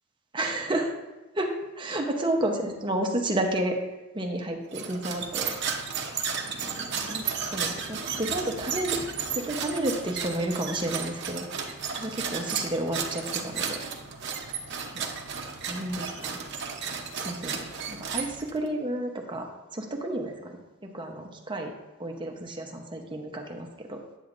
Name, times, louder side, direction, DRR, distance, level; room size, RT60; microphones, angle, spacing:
voice 1, 0.3-0.9 1.3-3.8 4.1-5.9 6.5-9.0 9.3-11.6 12.0-13.8 14.9-15.1 15.7-16.3 17.1-20.6 20.8-21.7 22.0-24.0, right 1 dB, 25° right, 3 dB, 0.8 m, -31 dB
sound 1, 4.7-18.7, right 6 dB, 60° right, 0.8 m, -33 dB
9.0 x 7.7 x 2.5 m, 1.1 s
head